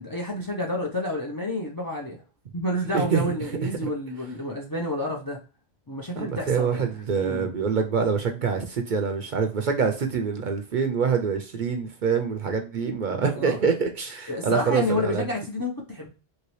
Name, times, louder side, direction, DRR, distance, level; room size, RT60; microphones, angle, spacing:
voice 1, 0.0-2.2 2.5-5.4 5.9-6.9 7.2-7.5 13.4-13.6 14.3-16.1, left 1 dB, 30° left, 0 dB, 0.4 m, -29 dB
voice 2, 2.9-3.4 3.8-3.9 6.2-15.3, right 6 dB, 55° right, 5 dB, 0.6 m, -25 dB
3.0 x 2.8 x 3.0 m, 0.35 s
omnidirectional pair, 1.1 m